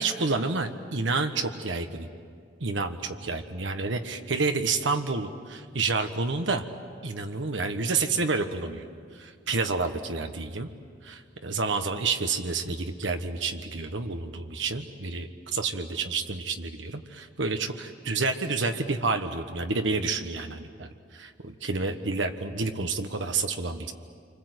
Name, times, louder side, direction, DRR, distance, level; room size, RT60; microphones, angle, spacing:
voice 1, 0.0-2.1 2.6-6.6 7.0-8.9 9.1-10.7 11.0-23.9, right 3 dB, 75° right, 6 dB, 1.3 m, -29 dB
28.5 x 25.0 x 8.1 m, 2.1 s
head